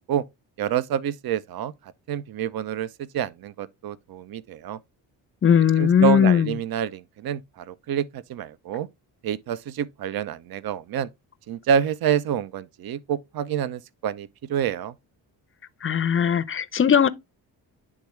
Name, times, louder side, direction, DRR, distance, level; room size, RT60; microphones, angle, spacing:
voice 1, 0.6-1.7 2.1-4.8 5.8-8.9 9.2-11.1 11.5-14.9, right 9 dB, 50° right, 0.6 m, -27 dB
voice 2, 5.4-6.5 15.8-17.1, left 8 dB, 25° left, 0.6 m, -19 dB
9.7 x 3.5 x 3.1 m
hypercardioid pair, 45°, 49 cm